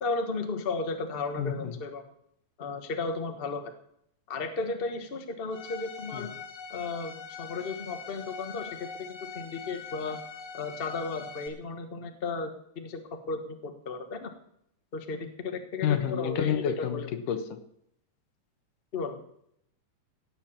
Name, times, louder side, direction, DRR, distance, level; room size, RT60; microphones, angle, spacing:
voice 1, 0.0-2.1 2.6-3.7 4.3-6.3 6.7-10.2 10.5-12.5 12.7-13.0 13.3-14.3 14.9-17.1 18.9-19.2, left 3 dB, 50° left, 6 dB, 0.6 m, -34 dB
voice 2, 1.4-1.7 6.1-6.2 15.8-17.6, left 9 dB, 85° left, 9 dB, 2.7 m, -29 dB
Bowed string instrument, 5.5-11.5, left 5 dB, 65° left, 2.7 m, -43 dB
17.0 x 7.9 x 7.1 m, 0.73 s
omnidirectional pair, 3.6 m